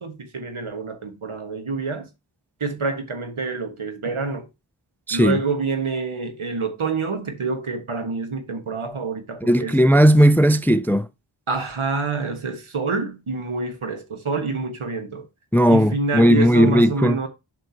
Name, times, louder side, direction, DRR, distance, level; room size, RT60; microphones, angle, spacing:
voice 1, 0.0-2.1 2.6-4.5 5.1-9.7 11.5-15.3 15.7-17.3, right 4 dB, 90° right, 1.5 m, -27 dB
voice 2, 5.1-5.4 9.4-11.1 15.5-17.2, equal, 5° left, 0.3 m, -16 dB
7.8 x 5.1 x 2.8 m
wide cardioid pair, 50°, 48 cm